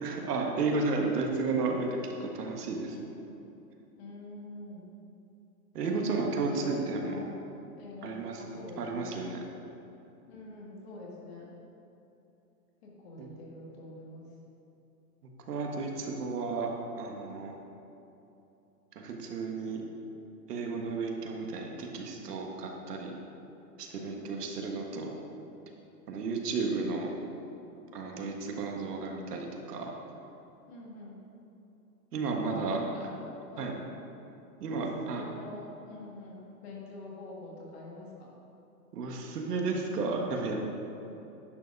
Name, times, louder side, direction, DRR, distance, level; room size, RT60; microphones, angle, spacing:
voice 1, 0.0-3.0 5.7-7.2 8.0-8.4 8.8-9.4 13.2-13.3 15.5-17.5 18.9-19.8 20.5-23.1 23.8-25.1 26.1-27.1 27.9-29.9 32.1-32.8 33.6-33.7 34.6-35.2 38.9-40.6, right 3 dB, 75° right, 1 dB, 1.5 m, -33 dB
voice 2, 2.8-3.2 4.0-4.9 5.8-7.4 7.8-9.2 10.3-11.5 12.8-14.2 24.1-24.5 30.7-31.2 32.6-33.2 33.5-33.8 34.7-38.3, left 1 dB, 40° left, -3 dB, 2.0 m, -46 dB
10.5 x 4.9 x 5.3 m, 2.9 s
hypercardioid pair, 170°, 47 cm